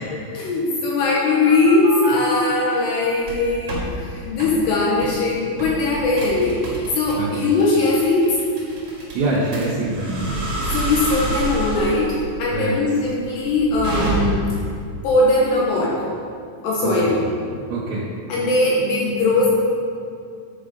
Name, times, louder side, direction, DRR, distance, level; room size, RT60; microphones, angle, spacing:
voice 1, 0.0-8.4 10.7-12.1 12.4-14.5 15.0-16.0 16.6-17.2 17.5-17.6 18.3-19.5, left 2 dB, 75° left, -4 dB, 2.8 m, -20 dB
sound 1, 1.0-2.8 3.2-3.9 4.4-4.6 5.0-5.2 5.6-14.6, right 1 dB, 45° right, 2.1 m, -28 dB
voice 2, 7.2-7.5 9.1-10.4 12.5-12.8 16.8-17.1 17.7-18.1, right 2 dB, 75° right, -6 dB, 3.0 m, -24 dB
9.8 x 5.0 x 5.2 m, 2.3 s
omnidirectional pair, 5.6 m